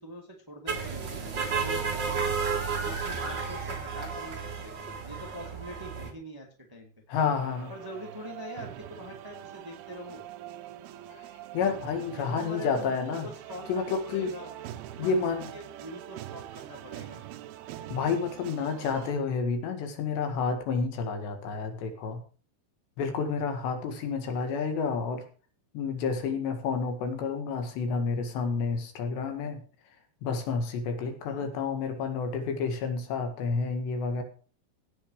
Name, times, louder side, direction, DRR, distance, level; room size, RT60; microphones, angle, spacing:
voice 1, 0.0-2.3 2.8-4.7 5.0-6.9 7.7-10.2 12.1-12.9 13.2-14.5 15.0-17.2 31.2-31.5, equal, 10° right, 1 dB, 1.4 m, -44 dB
sound 1, 0.7-6.1, right 5 dB, 40° right, 1.6 m, -32 dB
voice 2, 7.1-7.7 11.1-11.3 11.5-13.3 13.7-14.3 15.0-15.5 17.9-22.2 23.0-25.2 25.7-29.6 30.2-34.2, left 5 dB, 80° left, 6 dB, 4.1 m, -30 dB
sound 2, 7.2-19.1, right 12 dB, 75° right, 2.5 m, -44 dB
17.0 x 7.7 x 4.9 m, 0.39 s
omnidirectional pair, 5.0 m